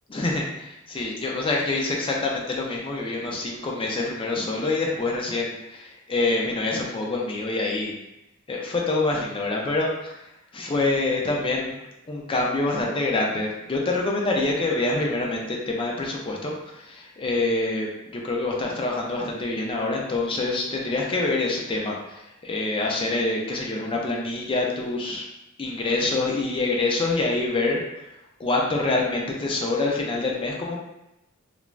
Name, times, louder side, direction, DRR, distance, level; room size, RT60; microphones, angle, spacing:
voice 1, 0.1-7.9 8.5-10.2 10.5-11.8 12.1-25.3 25.6-28.1 28.4-30.8, left 2 dB, 25° left, -2 dB, 0.4 m, -26 dB
2.4 x 2.1 x 3.1 m, 0.91 s
head